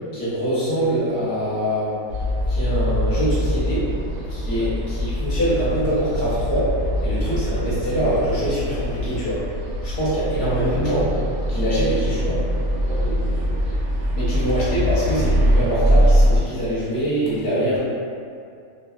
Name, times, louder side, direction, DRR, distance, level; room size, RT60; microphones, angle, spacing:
voice 1, 0.1-1.9 2.5-3.8 4.3-6.7 7.0-9.4 9.8-11.1 11.5-12.4 14.1-17.8, right 1 dB, 50° left, -10 dB, 0.9 m, -24 dB
sound 1, 2.1-16.4, equal, 85° right, 1.0 m, -22 dB
voice 2, 12.8-13.6 14.0-14.2 17.3-17.8, right 1 dB, 65° right, -6 dB, 0.8 m, -36 dB
2.6 x 2.3 x 2.3 m, 2.3 s
omnidirectional pair, 1.4 m